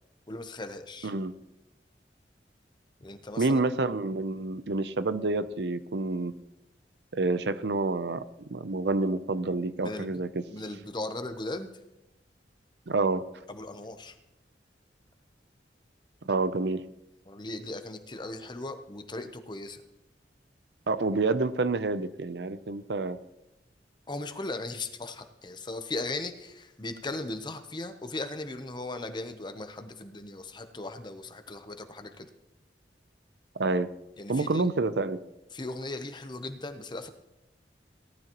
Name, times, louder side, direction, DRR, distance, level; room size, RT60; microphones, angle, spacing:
voice 1, 0.3-1.1 3.0-3.6 9.8-10.1 10.5-11.7 13.5-14.2 17.3-19.8 24.1-32.3 34.2-34.7 35.5-37.1, left 2 dB, 25° left, 8 dB, 0.8 m, -38 dB
voice 2, 3.4-6.3 7.1-8.2 8.5-10.4 12.9-13.3 16.2-16.8 20.9-23.2 33.6-33.9 34.3-35.2, right 3 dB, 70° right, 13 dB, 0.6 m, -28 dB
18.0 x 12.0 x 3.0 m, 0.92 s
head